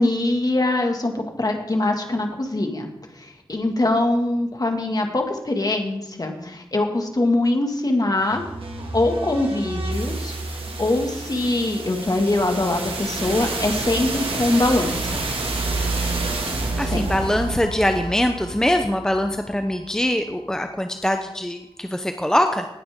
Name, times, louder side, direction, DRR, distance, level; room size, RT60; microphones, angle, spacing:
voice 1, 0.0-2.9 3.2-8.4 8.9-10.3 10.8-15.2 16.9-17.0, left 2 dB, 45° left, 3 dB, 2.1 m, -23 dB
sound 1, 8.1-20.0, right 2 dB, 90° right, 2.1 m, -29 dB
voice 2, 16.8-22.6, left 1 dB, 5° left, 6 dB, 0.8 m, -23 dB
18.0 x 9.5 x 3.7 m, 0.91 s
wide cardioid pair, 75°, 9 cm